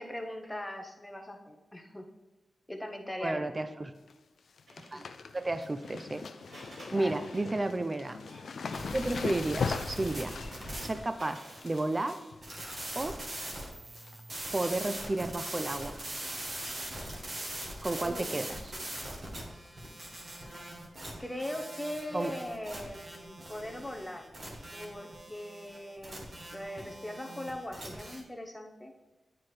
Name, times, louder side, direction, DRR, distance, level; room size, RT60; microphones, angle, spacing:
voice 1, 0.0-2.0 2.7-3.7 4.9-5.0 6.9-7.2 18.0-18.4 21.2-24.3 24.7-28.9, left 1 dB, 10° left, 4 dB, 0.7 m, -40 dB
voice 2, 3.2-3.9 4.9-5.1 5.3-6.2 6.6-6.7 6.9-8.2 8.9-10.4 10.8-12.2 13.0-13.2 14.5-16.0 17.8-18.6 22.1-22.3, right 2 dB, 25° right, 10 dB, 0.3 m, -32 dB
sound 1, 3.8-4.1 4.4-13.6 13.9-14.4 14.7-15.5 15.9-16.0 16.9-17.2 17.4-17.5 17.9-18.0 19.6-19.7 20.5-20.6, left 5 dB, 70° left, 0.4 m, -40 dB
Printer, 4.7-11.9, right 1 dB, 85° right, 2.3 m, -54 dB
sound 2, 8.7-28.2, right 1 dB, 40° right, 1.3 m, -42 dB
9.4 x 4.3 x 3.2 m, 1.1 s
wide cardioid pair, 130°, 0 cm